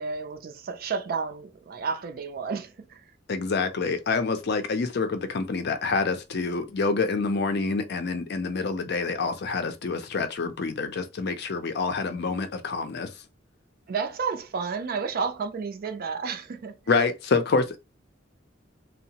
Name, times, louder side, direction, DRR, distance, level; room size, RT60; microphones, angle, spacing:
voice 1, 0.0-3.0 13.9-16.8, right 5 dB, 50° right, 0.4 m, -31 dB
voice 2, 3.3-13.1 16.9-17.8, left 4 dB, 55° left, 0.5 m, -27 dB
2.7 x 2.0 x 2.8 m
head